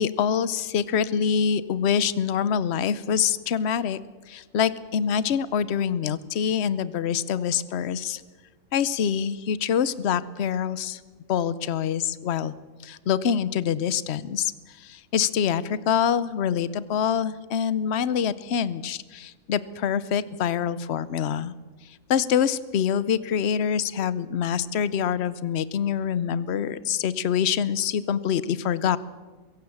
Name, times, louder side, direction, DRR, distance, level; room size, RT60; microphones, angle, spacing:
voice 1, 0.0-4.0 4.3-8.2 8.7-11.0 11.3-12.5 12.8-14.5 14.8-21.5 22.1-29.0, left 8 dB, 55° left, 17 dB, 1.0 m, -25 dB
23.0 x 16.5 x 7.1 m, 1.3 s
omnidirectional pair, 1.4 m